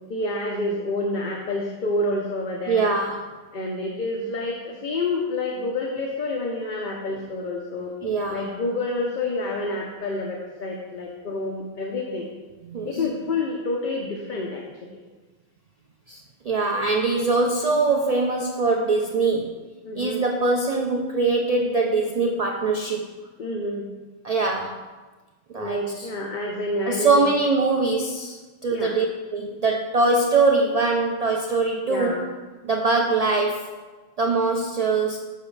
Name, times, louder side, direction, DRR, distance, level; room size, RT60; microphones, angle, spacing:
voice 1, 0.1-2.9 3.5-7.9 8.3-12.3 12.8-15.0 19.8-20.2 23.4-23.9 25.5-27.2 28.7-28.9 31.9-32.3, left 2 dB, 50° left, 0 dB, 0.8 m, -28 dB
voice 2, 2.7-3.3 8.0-8.5 12.7-12.9 16.1-16.2 16.4-19.6 19.9-23.1 24.2-24.8 25.5-26.1 26.9-29.1 29.3-32.1 32.6-33.8 34.2-35.2, right 3 dB, 50° right, 1 dB, 0.5 m, -22 dB
8.1 x 6.1 x 3.2 m, 1.3 s
omnidirectional pair, 1.1 m